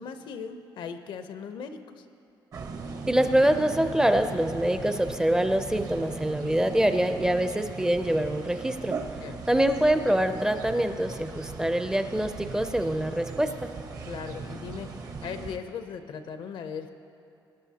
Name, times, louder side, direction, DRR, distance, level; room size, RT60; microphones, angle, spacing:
voice 1, 0.0-2.1 9.2-9.4 14.0-16.9, left 6 dB, 80° left, 8 dB, 0.7 m, -38 dB
sound 1, 2.5-15.6, right 4 dB, 50° right, 0.7 m, -39 dB
voice 2, 3.1-9.0 9.5-13.7, right 1 dB, 10° right, 8 dB, 0.4 m, -25 dB
19.0 x 10.5 x 2.8 m, 2.7 s
cardioid pair, 155°, 8 cm